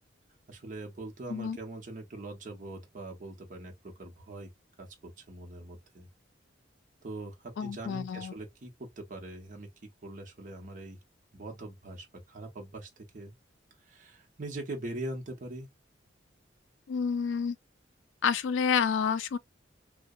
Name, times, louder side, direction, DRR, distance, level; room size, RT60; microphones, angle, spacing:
voice 1, 0.5-4.5 4.8-6.1 7.0-11.0 11.3-13.3 13.8-15.7, right 2 dB, 45° right, 0.7 m, -42 dB
voice 2, 7.6-8.3 16.9-17.6 18.2-19.4, left 6 dB, 75° left, 0.3 m, -29 dB
2.7 x 2.1 x 2.2 m
head